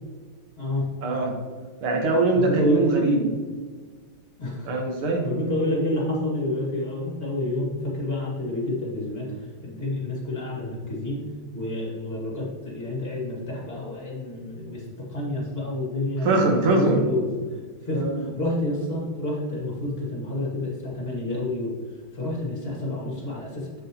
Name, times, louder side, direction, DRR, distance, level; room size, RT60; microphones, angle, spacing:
voice 1, 1.0-1.3 1.8-3.3 4.6-5.3 16.2-17.0 17.9-18.2, right 2 dB, 80° right, 1 dB, 2.3 m, -22 dB
voice 2, 2.3-3.0 4.4-4.7 5.2-9.3 9.6-11.2 11.5-17.3 17.8-21.7 22.1-23.7, left 1 dB, 25° left, -3 dB, 2.4 m, -29 dB
7.7 x 7.1 x 3.1 m, 1.5 s
omnidirectional pair, 2.4 m